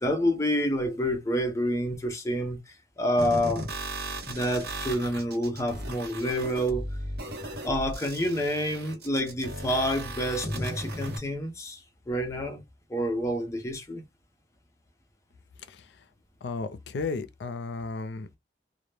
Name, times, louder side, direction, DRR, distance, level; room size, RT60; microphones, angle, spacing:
voice 1, 0.0-3.6 4.3-6.9 7.6-12.6 12.9-14.0, equal, 15° left, 0.5 m, -28 dB
sound 1, 3.2-11.2, right 1 dB, 65° right, 0.8 m, -36 dB
voice 2, 16.4-18.4, left 3 dB, 75° left, 0.4 m, -34 dB
2.1 x 2.0 x 3.0 m
head